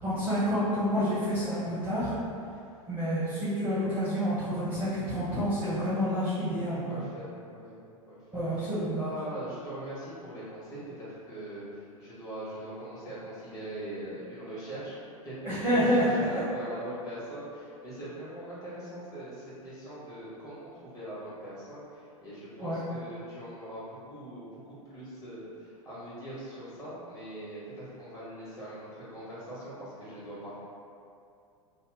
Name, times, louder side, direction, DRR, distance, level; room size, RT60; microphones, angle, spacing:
voice 1, 0.0-2.1 2.9-7.0 8.3-9.1 15.4-16.0 22.6-22.8, equal, 10° right, -13 dB, 0.9 m, -28 dB
voice 2, 6.9-8.7 9.0-15.0 15.2-30.5, right 1 dB, 20° left, -11 dB, 1.4 m, -41 dB
2.8 x 2.3 x 3.5 m, 2.5 s
figure-of-eight pair, 90°, 18 cm